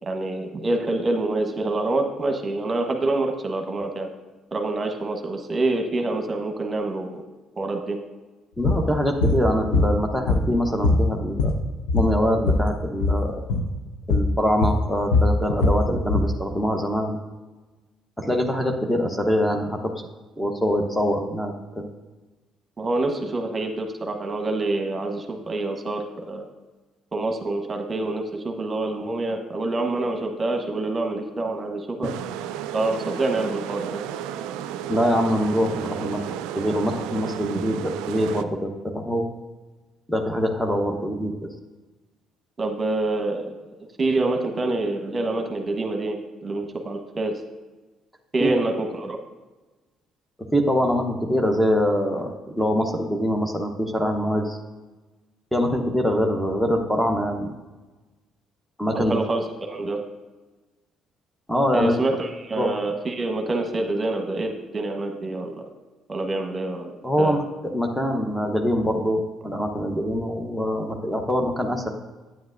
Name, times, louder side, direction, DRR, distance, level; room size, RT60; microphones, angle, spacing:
voice 1, 0.0-4.1 4.5-7.2 7.6-8.0 22.8-26.5 27.1-32.1 32.7-34.0 42.6-43.6 44.0-46.2 46.4-47.3 48.3-49.2 58.9-60.0 61.7-65.5 66.1-66.9 67.2-67.4, right 2 dB, 35° right, 4 dB, 1.1 m, -26 dB
sound 1, 8.6-8.8 9.2-9.4 9.7-10.6 10.8-12.7 12.9-13.2 13.5-13.7 14.1-14.3 14.6-16.3, left 2 dB, 85° left, 0.7 m, -21 dB
voice 2, 8.6-11.5 11.9-13.4 14.1-17.2 18.2-19.9 20.4-21.9 34.9-36.2 36.5-39.3 40.1-41.5 48.4-48.5 50.5-54.6 55.5-57.5 58.8-59.2 61.5-61.9 62.6-62.7 67.0-67.4 67.7-71.9, equal, 5° left, 4 dB, 1.0 m, -24 dB
sound 2, 32.0-38.4, right 10 dB, 75° right, 0.3 m, -33 dB
9.4 x 8.9 x 2.6 m, 1.2 s
hypercardioid pair, 55°, 0 cm